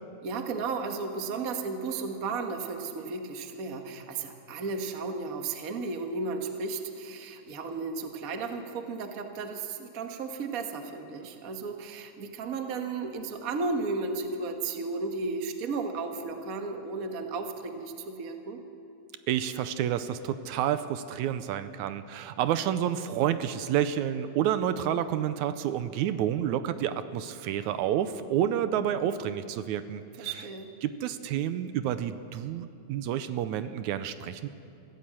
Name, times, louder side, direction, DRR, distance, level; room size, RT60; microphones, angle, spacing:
voice 1, 0.2-18.6 30.2-30.7, right 4 dB, 40° right, 5 dB, 1.3 m, -34 dB
voice 2, 19.3-30.4 30.8-34.5, right 10 dB, 80° right, 12 dB, 2.0 m, -29 dB
24.0 x 15.5 x 7.6 m, 2.6 s
omnidirectional pair, 3.4 m